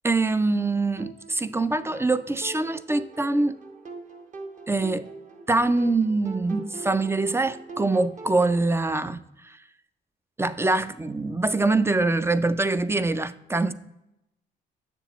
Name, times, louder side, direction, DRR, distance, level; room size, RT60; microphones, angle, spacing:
voice 1, 0.0-3.6 4.7-5.1 5.5-9.6 10.4-13.7, right 2 dB, 15° right, 0.3 m, -24 dB
sound 1, 1.0-8.7, right 3 dB, 40° right, 1.0 m, -42 dB
7.4 x 6.9 x 3.0 m
cardioid pair, 90°, 20 cm